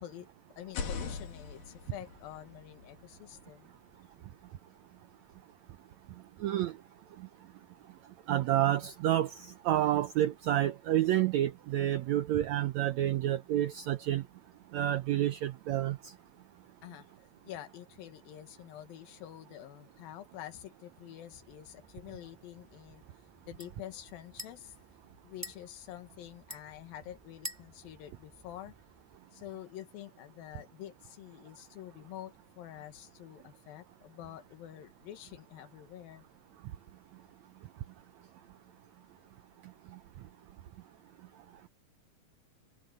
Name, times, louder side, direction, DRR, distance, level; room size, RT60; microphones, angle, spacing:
voice 1, 0.0-3.7 16.8-17.1 17.4-23.0 23.4-24.8 25.2-28.7 29.3-36.3, left 12 dB, 85° left, 3.2 m, -47 dB
sound 1, 0.6-4.4, left 5 dB, 65° left, 4.0 m, -43 dB
voice 2, 6.4-6.7 8.3-14.2 14.7-16.1, right 12 dB, 80° right, 1.6 m, -29 dB
sound 2, 21.4-29.2, left 1 dB, 5° right, 2.7 m, -51 dB
omnidirectional pair, 4.0 m